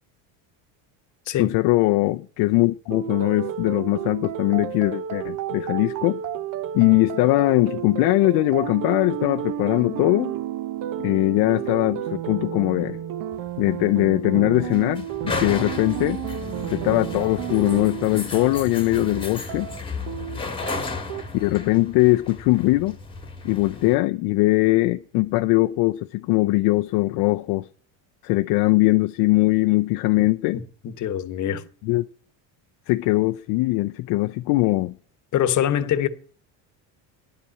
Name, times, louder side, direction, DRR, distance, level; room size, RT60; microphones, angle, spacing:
voice 1, 1.4-6.2 6.7-10.3 11.0-13.0 13.6-16.2 16.7-19.7 21.3-23.0 23.4-27.7 28.2-30.6 31.9-32.0 32.9-34.9, left 20 dB, 65° left, 0.6 m, -21 dB
sound 1, 2.9-21.2, right 11 dB, 50° right, 0.7 m, -32 dB
sound 2, 13.3-24.0, left 3 dB, 10° left, 1.5 m, -34 dB
voice 2, 30.2-31.6 35.3-36.1, left 10 dB, 45° left, 1.1 m, -25 dB
10.5 x 5.6 x 8.4 m
cardioid pair, 125°, 42 cm